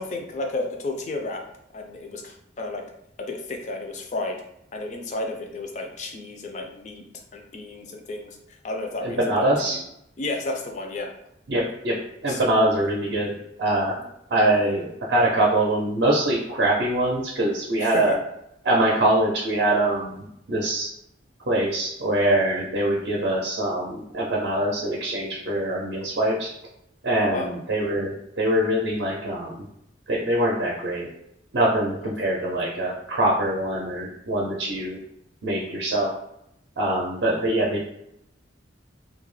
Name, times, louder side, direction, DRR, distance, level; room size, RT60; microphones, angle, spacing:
voice 1, 0.0-1.4 1.7-2.8 3.2-4.4 4.7-7.0 7.3-8.4 8.6-9.8 10.2-11.1 12.3-12.4 14.5-14.8 17.8-18.2 27.2-27.5 32.3-32.5, left 2 dB, 40° left, 3 dB, 0.3 m, -32 dB
voice 2, 9.0-9.8 11.5-11.9 12.2-13.3 13.6-14.0 14.3-18.2 18.6-20.9 21.5-26.5 27.0-29.6 30.1-31.1 31.5-35.0 35.4-36.1 36.8-37.8, right 1 dB, 65° right, -3 dB, 0.5 m, -23 dB
2.2 x 2.0 x 3.1 m, 0.79 s
head